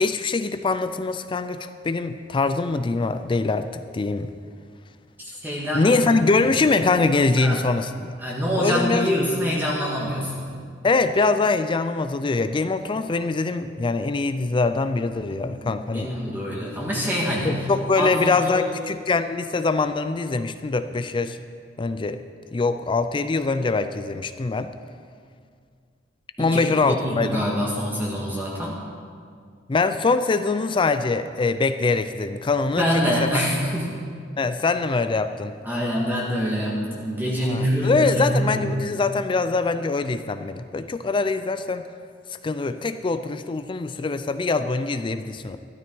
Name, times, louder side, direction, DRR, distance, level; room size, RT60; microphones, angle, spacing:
voice 1, 0.0-3.7 3.9-4.3 5.7-7.9 8.6-9.1 10.8-16.1 17.4-21.4 21.8-22.2 22.5-24.7 26.4-27.4 29.7-32.9 33.2-33.3 34.4-35.5 37.5-41.8 42.4-45.6, left 3 dB, 25° left, 10 dB, 0.4 m, -23 dB
voice 2, 5.2-6.0 6.4-6.5 7.4-7.6 8.2-10.5 15.6-17.7 18.0-18.7 26.4-28.8 32.8-33.9 35.6-38.7, equal, 10° right, -5 dB, 1.6 m, -25 dB
12.5 x 12.5 x 4.6 m, 2.1 s
head